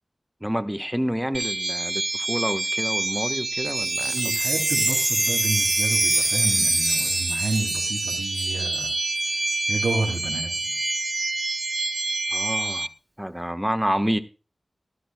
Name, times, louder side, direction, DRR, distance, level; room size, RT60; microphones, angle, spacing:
voice 1, 0.4-4.3 12.3-12.9 13.2-14.2, equal, 5° right, 10 dB, 1.3 m, -28 dB
sound 1, 1.3-12.9, right 3 dB, 60° right, 0.6 m, -27 dB
Wind chime, 3.7-8.9 9.2-9.3 9.5-9.9, right 1 dB, 25° right, 1.0 m, -26 dB
voice 2, 4.1-9.0 9.7-10.9, right 3 dB, 85° right, -3 dB, 3.2 m, -30 dB
17.0 x 12.5 x 2.3 m, 0.32 s
cardioid pair, 45°, 0 cm